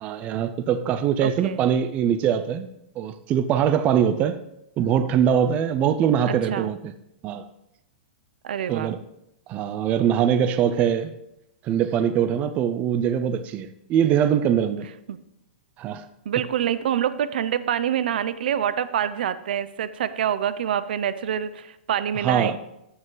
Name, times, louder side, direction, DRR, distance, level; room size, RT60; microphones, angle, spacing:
voice 1, 0.0-2.7 3.0-4.4 4.8-6.9 7.2-7.4 8.7-9.0 9.5-11.1 11.6-14.9 15.8-16.0 22.2-22.6, right 9 dB, 25° right, 0.5 m, -22 dB
voice 2, 1.2-1.6 6.3-6.7 8.4-8.9 15.1-15.2 16.3-22.6, right 9 dB, 70° right, 0.6 m, -26 dB
13.5 x 5.4 x 3.9 m
hypercardioid pair, 150°, 5 cm